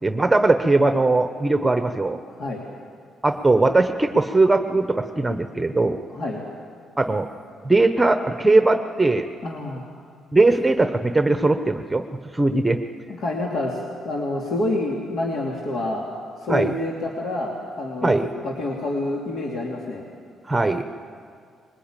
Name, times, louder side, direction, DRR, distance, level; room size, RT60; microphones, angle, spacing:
voice 1, 0.0-2.2 3.2-6.0 7.0-7.3 7.6-9.3 10.3-12.0 12.3-12.8 16.5-16.7 18.0-18.3 20.5-20.8, right 2 dB, 15° right, 8 dB, 1.0 m, -19 dB
voice 2, 2.3-2.6 6.1-6.4 9.4-9.9 13.1-16.0 16.4-20.0, left 2 dB, 65° left, -2 dB, 2.9 m, -28 dB
21.5 x 20.0 x 9.0 m, 2.2 s
cardioid pair, 90°, 0 cm